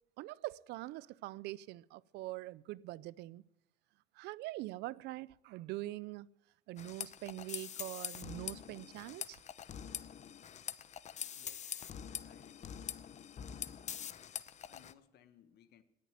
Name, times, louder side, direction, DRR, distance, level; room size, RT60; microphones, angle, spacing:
voice 1, 0.2-3.4 4.2-6.3 6.7-9.4, right 17 dB, 85° right, 0.5 m, -44 dB
sound 1, 6.8-14.9, left 8 dB, 45° left, 0.8 m, -44 dB
voice 2, 11.4-11.7 12.1-12.8 14.7-15.8, left 10 dB, 75° left, 1.4 m, -64 dB
18.5 x 6.9 x 9.4 m
cardioid pair, 110°, 17 cm